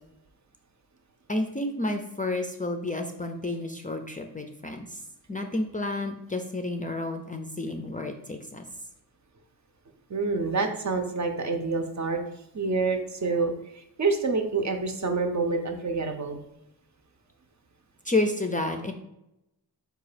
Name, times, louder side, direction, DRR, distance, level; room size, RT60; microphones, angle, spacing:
voice 1, 1.3-5.0 5.3-8.6 18.0-18.9, left 2 dB, 20° left, 4 dB, 0.4 m, -30 dB
voice 2, 10.1-12.2 12.5-16.4, right 4 dB, 45° right, 5 dB, 0.6 m, -27 dB
4.7 x 2.3 x 4.9 m, 0.83 s
wide cardioid pair, 90°, 41 cm